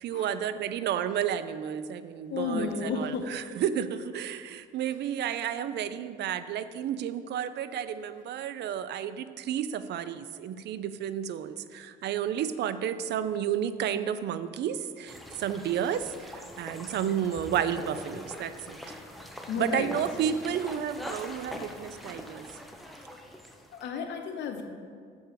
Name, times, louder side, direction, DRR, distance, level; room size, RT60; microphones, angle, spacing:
voice 1, 0.0-19.0 19.6-22.5, right 9 dB, 65° right, 13 dB, 0.4 m, -32 dB
voice 2, 2.3-3.3 19.5-20.0 23.7-24.6, left 5 dB, 70° left, 5 dB, 0.9 m, -32 dB
sound 1, 15.1-23.9, left 1 dB, ahead, 0.8 m, -43 dB
7.0 x 4.6 x 6.7 m, 2.1 s
cardioid pair, 85°, 19 cm